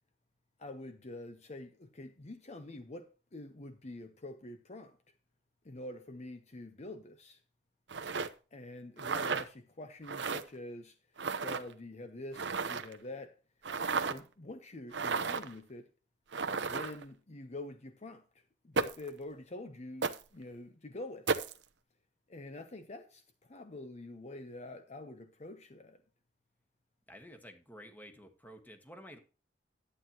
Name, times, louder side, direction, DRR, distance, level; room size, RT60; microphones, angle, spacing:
voice 1, 0.6-5.0 5.6-7.4 8.5-11.0 11.4-13.4 14.0-15.9 16.6-21.4 22.3-26.0, left 2 dB, 40° left, 0.8 m, -46 dB
sound 1, 7.9-8.3 9.0-9.5 10.1-10.4 11.2-11.6 12.3-13.0 13.6-14.2 14.9-15.5 16.3-17.0 18.8-19.1 20.0-20.2 21.3-21.5, right 4 dB, 85° right, 0.8 m, -33 dB
voice 2, 27.1-29.2, equal, 10° left, 1.5 m, -51 dB
11.5 x 9.0 x 2.9 m
head